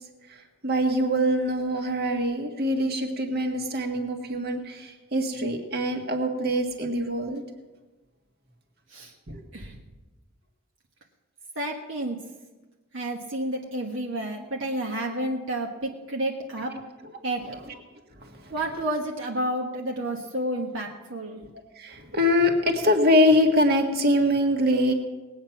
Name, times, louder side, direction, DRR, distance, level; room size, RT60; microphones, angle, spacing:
voice 1, 0.3-7.4 9.3-9.4 16.7-16.8 18.2-18.5 21.8-24.9, left 1 dB, 50° right, 3 dB, 1.8 m, -24 dB
voice 2, 11.5-12.2 12.9-16.7 17.2-17.4 18.5-21.4, right 1 dB, 70° right, 0 dB, 1.4 m, -30 dB
19.5 x 8.8 x 5.9 m, 1.2 s
head